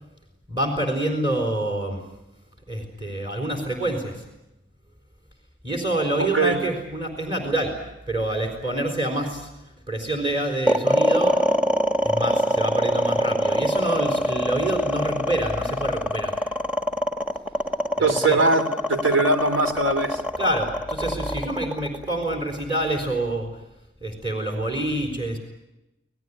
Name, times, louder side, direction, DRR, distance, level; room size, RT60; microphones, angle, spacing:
voice 1, 0.5-2.0 2.7-4.2 5.6-7.7 8.1-9.5 9.9-11.3 12.0-16.4 18.0-18.4 20.4-23.5 24.0-25.4, right 1 dB, 25° right, 3 dB, 4.1 m, -27 dB
voice 2, 6.2-6.6 18.0-20.2, right 3 dB, 80° right, 7 dB, 2.9 m, -21 dB
sound 1, 10.7-22.9, equal, 5° right, 1.3 m, -23 dB
27.5 x 18.0 x 9.7 m, 0.96 s
head